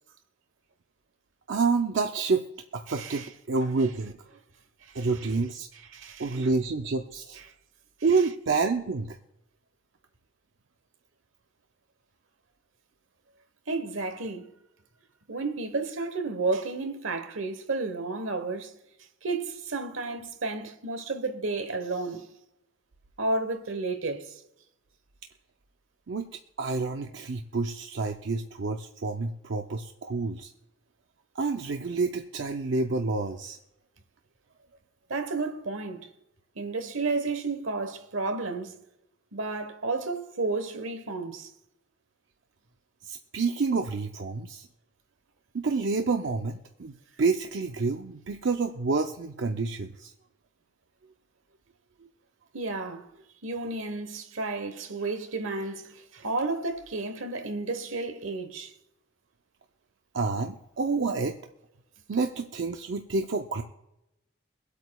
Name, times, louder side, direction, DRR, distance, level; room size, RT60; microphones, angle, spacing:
voice 1, 1.5-2.4 2.7-4.1 4.9-5.7 6.2-7.4 8.0-9.2 26.1-26.3 26.6-30.5 31.4-33.6 43.0-44.7 45.5-50.1 60.1-61.3 62.1-63.6, right 4 dB, 60° right, 0.6 m, -28 dB
voice 2, 2.9-3.3 4.9-5.1 5.9-6.5 13.7-14.5 15.3-18.7 19.2-22.3 23.2-24.4 35.1-36.1 36.5-38.8 39.3-41.5 52.5-53.1 53.4-58.7, right 3 dB, 80° right, 1.1 m, -32 dB
24.0 x 8.2 x 2.3 m
head